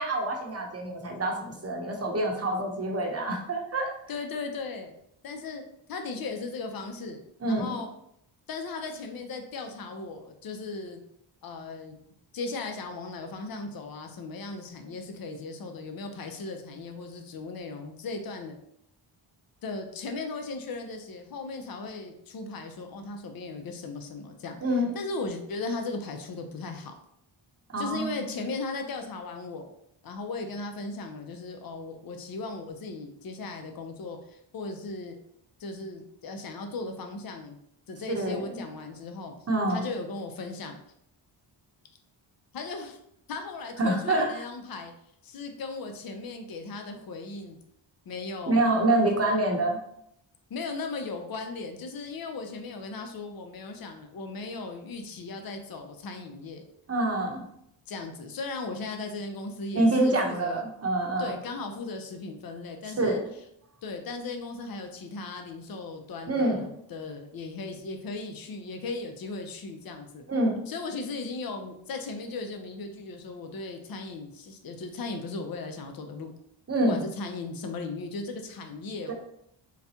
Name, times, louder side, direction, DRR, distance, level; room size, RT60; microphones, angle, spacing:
voice 1, 0.0-3.9 7.4-7.8 24.6-24.9 27.7-28.3 38.2-38.4 39.5-39.8 43.8-44.3 48.5-49.8 56.9-57.4 59.7-61.3 63.0-63.2 66.3-66.6 70.3-70.5 76.7-77.0, right 1 dB, 30° right, 0 dB, 0.8 m, -26 dB
voice 2, 4.1-4.9 5.2-5.6 5.9-7.2 7.4-7.9 8.5-11.0 11.4-12.0 12.3-18.5 19.6-26.9 27.8-29.7 30.0-35.2 35.6-37.6 37.9-39.3 39.7-40.8 42.5-43.0 43.3-44.9 45.2-47.6 48.1-48.6 50.5-56.6 57.9-60.6 61.2-63.2 63.8-70.2 70.7-76.3 76.8-79.1, left 3 dB, 50° left, 5 dB, 0.6 m, -37 dB
4.1 x 2.2 x 2.7 m, 0.73 s
cardioid pair, 70°, 48 cm